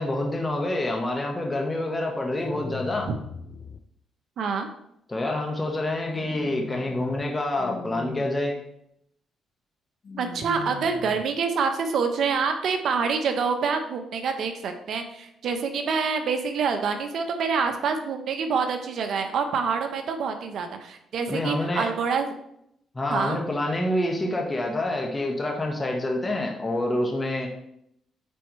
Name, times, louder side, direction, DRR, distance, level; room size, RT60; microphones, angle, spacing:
voice 1, 0.0-3.1 5.1-8.6 21.3-21.9 22.9-27.5, left 1 dB, 20° left, 1 dB, 1.4 m, -27 dB
sound 1, 2.4-3.8 6.1-7.2 7.6-8.3 10.0-11.2, left 5 dB, 50° left, 0.6 m, -39 dB
voice 2, 4.4-4.7 10.2-22.3 23.1-23.4, right 5 dB, 65° right, 6 dB, 1.0 m, -26 dB
9.0 x 4.5 x 3.2 m, 0.75 s
cardioid pair, 90°, 0 cm